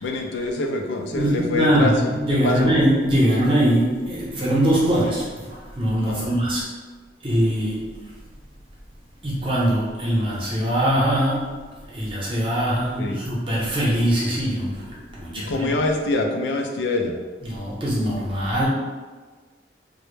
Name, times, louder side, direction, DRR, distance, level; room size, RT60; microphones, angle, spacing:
voice 1, 0.0-2.8 6.0-6.3 13.0-13.2 15.5-17.2, left 2 dB, 85° left, 3 dB, 0.4 m, -25 dB
voice 2, 1.1-5.5 5.7-6.6 7.2-7.8 9.2-11.6 11.9-15.7 17.4-18.7, right 1 dB, 30° right, -6 dB, 0.7 m, -22 dB
2.1 x 2.0 x 3.0 m, 1.4 s
head